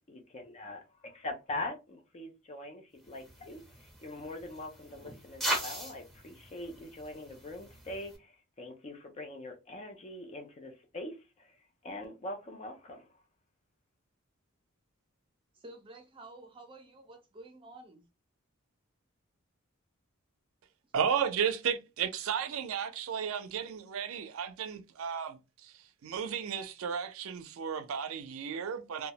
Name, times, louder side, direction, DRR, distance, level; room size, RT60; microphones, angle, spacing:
voice 1, 0.1-13.1, left 2 dB, 30° left, 0.4 m, -43 dB
sound 1, 3.1-8.2, right 1 dB, ahead, 1.0 m, -40 dB
voice 2, 15.5-18.0, right 2 dB, 25° right, 0.6 m, -51 dB
voice 3, 20.9-29.1, right 7 dB, 70° right, 0.4 m, -34 dB
2.2 x 2.0 x 2.8 m
head